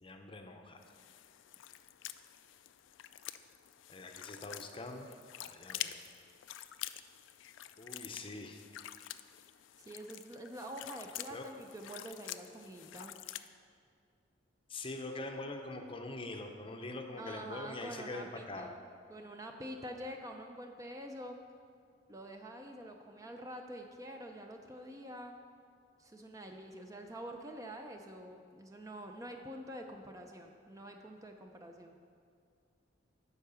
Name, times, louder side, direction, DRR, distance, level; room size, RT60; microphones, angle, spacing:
voice 1, 0.0-0.8 3.9-5.1 5.4-6.0 7.8-8.6 11.3-11.5 14.7-18.7, left 2 dB, 25° left, 4 dB, 0.7 m, -43 dB
sound 1, 0.8-13.5, left 13 dB, 80° left, 0.3 m, -47 dB
voice 2, 9.9-13.2 17.2-18.8 19.1-21.4 22.1-25.4 26.0-32.0, right 1 dB, 15° right, 3 dB, 0.5 m, -46 dB
10.5 x 4.6 x 6.8 m, 2.3 s
head